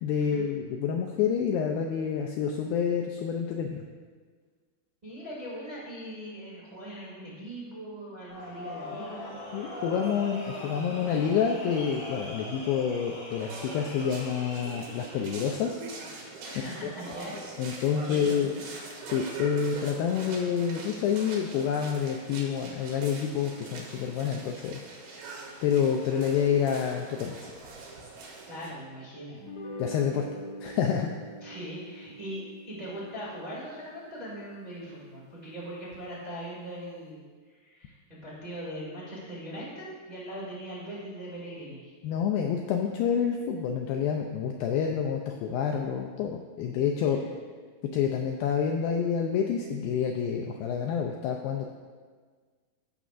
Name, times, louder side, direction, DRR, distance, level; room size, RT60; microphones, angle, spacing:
voice 1, 0.0-3.9 9.5-15.8 16.8-16.9 17.6-18.5 19.1-24.8 25.6-27.5 29.8-30.2 30.6-31.1 42.0-47.2 47.9-51.7, left 7 dB, 85° left, 2 dB, 2.1 m, -28 dB
voice 2, 5.0-9.4 16.4-18.6 28.5-29.8 31.4-41.9 46.9-47.3, equal, 20° right, -7 dB, 1.0 m, -41 dB
sound 1, 8.3-15.5, left 1 dB, 45° left, 3.4 m, -41 dB
sound 2, 13.4-28.7, right 3 dB, 75° right, 3.2 m, -43 dB
sound 3, 29.4-35.9, equal, 60° left, 2.1 m, -45 dB
15.0 x 6.1 x 2.5 m, 1.5 s
omnidirectional pair, 4.6 m